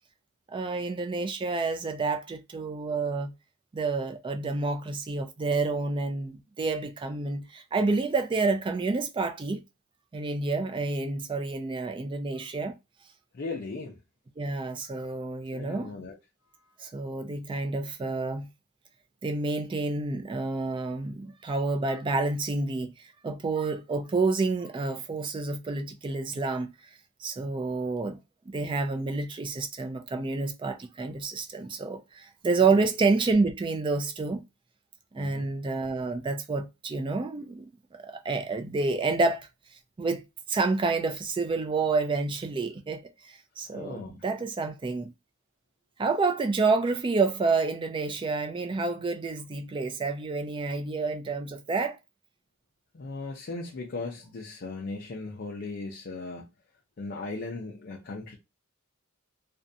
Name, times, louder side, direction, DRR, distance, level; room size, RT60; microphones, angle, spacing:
voice 1, 0.5-3.3 3.7-9.6 10.1-12.8 14.4-15.9 16.8-18.5 19.2-22.9 23.2-26.7 27.2-28.2 28.5-34.4 35.1-39.5 40.0-40.2 40.5-43.0 43.3-45.1 46.0-52.0, right 3 dB, 25° right, 0.3 m, -29 dB
voice 2, 13.3-14.0 15.5-16.1 32.6-32.9 35.2-35.5 43.7-44.2 52.9-56.5 57.0-58.4, left 3 dB, 50° left, 0.5 m, -37 dB
2.5 x 2.1 x 2.6 m
head